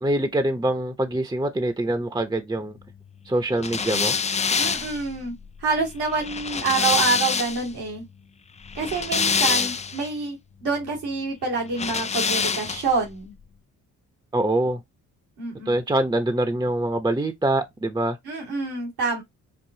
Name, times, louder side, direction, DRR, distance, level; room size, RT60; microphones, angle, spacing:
voice 1, 0.0-2.8 3.3-4.1 9.5-9.7 14.3-14.8 15.7-18.2, right 1 dB, 10° right, 0.8 m, -24 dB
sound 1, 3.6-7.7 8.6-10.1 11.7-13.0, left 5 dB, 20° left, 0.3 m, -25 dB
voice 2, 4.6-5.3 5.6-8.0 8.7-13.3 15.4-15.8 18.2-19.2, right 4 dB, 85° right, 2.4 m, -27 dB
5.6 x 2.4 x 2.8 m
supercardioid pair, 50°, 38 cm